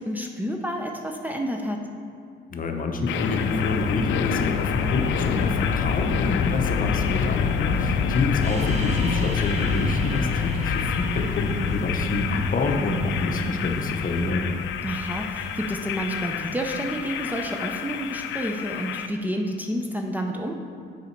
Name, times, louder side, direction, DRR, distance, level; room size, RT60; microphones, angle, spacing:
voice 1, 0.0-1.8 7.7-8.1 14.8-20.6, equal, 10° right, 2 dB, 0.6 m, -30 dB
voice 2, 2.5-14.5, left 2 dB, 45° left, 4 dB, 0.8 m, -27 dB
sound 1, 3.1-19.1, left 6 dB, 70° left, 0.4 m, -27 dB
sound 2, 8.4-13.8, right 2 dB, 35° right, 1.0 m, -40 dB
6.8 x 5.1 x 4.5 m, 2.4 s
cardioid pair, 90°, 20 cm